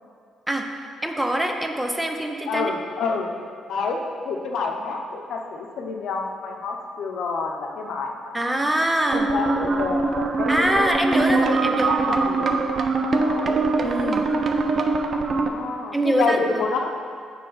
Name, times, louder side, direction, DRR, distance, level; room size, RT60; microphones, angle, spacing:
voice 1, 1.0-2.7 8.3-9.3 10.5-12.2 13.8-14.3 15.9-16.7, right 1 dB, 10° right, 3 dB, 0.7 m, -24 dB
voice 2, 2.5-3.3 3.7-8.4 9.1-10.9 11.3-12.6 13.2-13.7 15.1-16.9, left 4 dB, 75° left, 2 dB, 0.8 m, -28 dB
sound 1, 9.1-15.5, right 3 dB, 50° right, 0.6 m, -23 dB
6.7 x 4.6 x 5.6 m, 2.2 s
cardioid pair, 90°, 0 cm